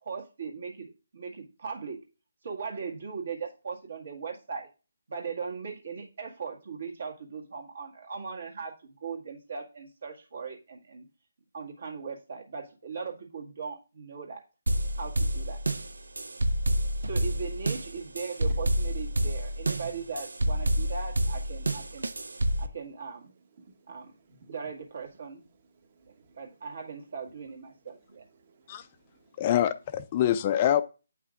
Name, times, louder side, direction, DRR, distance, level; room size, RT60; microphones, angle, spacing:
voice 1, 0.0-2.0 2.4-4.7 5.1-11.0 11.5-14.4 15.0-15.6 17.0-22.1 22.6-23.3 23.9-24.1 24.5-25.4 26.4-28.2, right 5 dB, 60° right, 1.8 m, -39 dB
sound 1, 14.7-22.7, right 1 dB, 85° right, 0.6 m, -28 dB
voice 2, 23.5-24.5 25.8-26.4 28.3-29.4, right 4 dB, 40° right, 1.2 m, -60 dB
voice 3, 29.4-30.8, left 11 dB, 30° left, 0.4 m, -25 dB
8.8 x 5.6 x 2.4 m
figure-of-eight pair, 155°, 0 cm